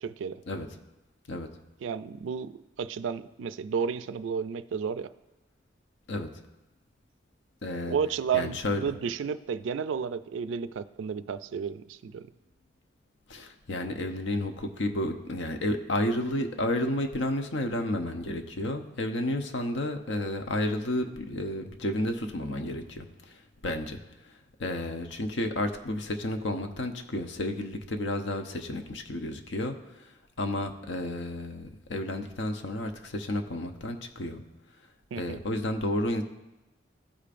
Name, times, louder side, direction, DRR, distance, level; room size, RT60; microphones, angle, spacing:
voice 1, 0.0-0.4 1.8-5.1 7.9-12.3 35.1-35.4, right 6 dB, 80° right, 13 dB, 0.3 m, -32 dB
voice 2, 7.6-8.0 8.3-8.9 13.3-24.0 24.2-30.1 30.4-34.4 35.2-36.2, left 1 dB, 70° left, 6 dB, 0.7 m, -31 dB
14.5 x 5.0 x 2.5 m, 1.0 s
head